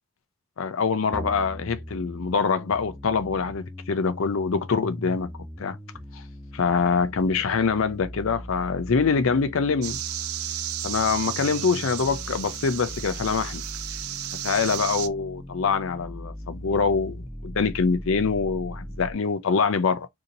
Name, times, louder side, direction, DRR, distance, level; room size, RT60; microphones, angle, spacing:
voice 1, 0.6-5.3 5.6-5.8 6.1-6.2 6.5-10.0 10.8-13.6 14.4-20.1, left 5 dB, 60° left, 0.5 m, -24 dB
sound 1, 1.1-19.1, equal, 5° left, 0.6 m, -39 dB
sound 2, 9.8-15.1, right 12 dB, 75° right, 0.5 m, -33 dB
2.8 x 2.7 x 3.8 m
head